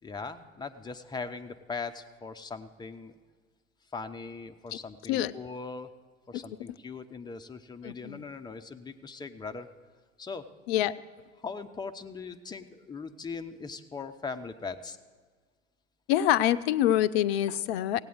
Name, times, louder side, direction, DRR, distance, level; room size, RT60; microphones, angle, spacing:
voice 1, 0.0-3.1 3.9-5.9 6.3-9.7 10.2-10.5 10.8-10.9 11.4-15.0, left 4 dB, 10° left, 7 dB, 0.6 m, -40 dB
voice 2, 7.8-8.3 10.7-10.9 16.1-18.0, left 12 dB, 50° left, 15 dB, 0.6 m, -26 dB
16.5 x 8.8 x 7.9 m, 1.5 s
figure-of-eight pair, 80°, 41 cm